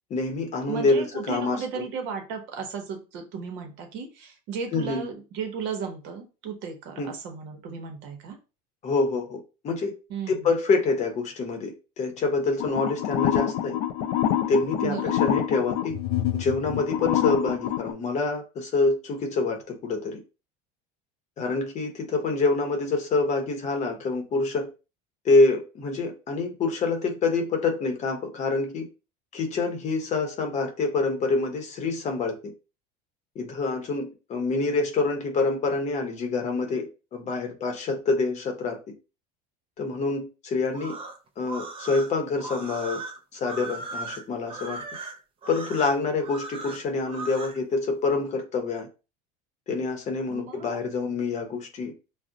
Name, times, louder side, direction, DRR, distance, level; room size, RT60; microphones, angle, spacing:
voice 1, 0.1-1.9 4.7-5.1 7.0-7.1 8.8-9.9 10.3-13.8 14.5-16.0 16.3-20.2 21.4-24.7 25.2-28.9 29.3-32.4 33.4-38.8 39.8-40.9 41.4-43.0 43.3-44.8 45.5-48.9 49.7-51.9, left 3 dB, 35° left, 0.7 m, -26 dB
voice 2, 0.7-8.4 10.1-10.5 14.8-15.3 50.3-50.8, right 6 dB, 65° right, 0.9 m, -35 dB
sound 1, 12.6-17.9, left 11 dB, 65° left, 0.4 m, -26 dB
sound 2, 40.7-47.6, right 3 dB, 30° right, 0.5 m, -38 dB
2.5 x 2.0 x 3.7 m
supercardioid pair, 125°, 20 cm